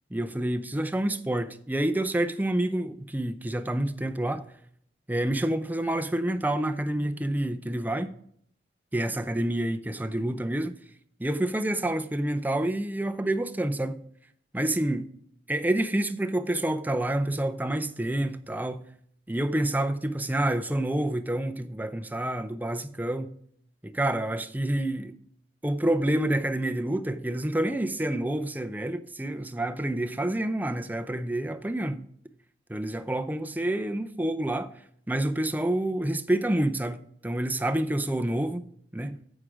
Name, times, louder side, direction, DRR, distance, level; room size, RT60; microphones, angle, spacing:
voice 1, 0.1-4.4 5.1-8.1 8.9-10.7 11.2-14.0 14.5-15.1 15.5-18.8 19.3-23.3 23.8-25.1 25.6-32.0 32.7-34.7 35.1-38.7 38.9-39.2, right 1 dB, 10° right, 0.5 m, -28 dB
9.6 x 7.5 x 5.0 m
head